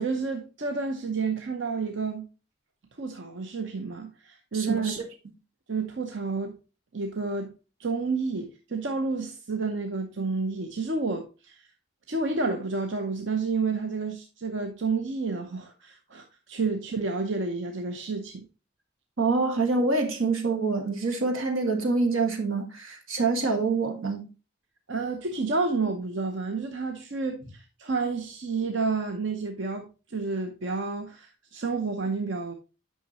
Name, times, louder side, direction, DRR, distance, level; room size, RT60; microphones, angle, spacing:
voice 1, 0.0-2.3 3.0-4.9 5.7-6.6 6.9-7.5 7.8-11.7 12.1-18.5 24.9-32.5, right 4 dB, 60° right, 0.8 m, -30 dB
voice 2, 4.5-5.0 19.2-24.3, right 3 dB, 80° right, 1.6 m, -26 dB
9.1 x 5.7 x 3.0 m
head